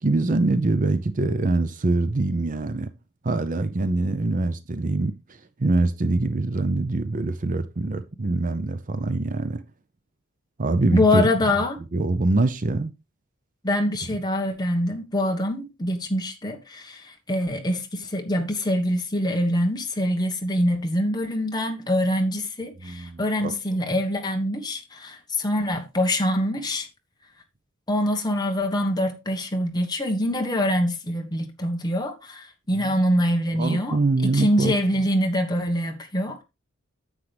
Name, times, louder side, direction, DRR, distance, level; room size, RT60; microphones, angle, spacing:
voice 1, 0.0-2.9 3.2-9.6 10.6-11.5 11.9-12.9 22.8-23.5 32.8-33.0 33.6-34.7, right 2 dB, 40° right, 0.6 m, -24 dB
voice 2, 10.9-11.8 13.6-26.9 27.9-34.0 34.2-36.4, left 1 dB, 20° left, 1.4 m, -24 dB
9.7 x 7.5 x 3.4 m
head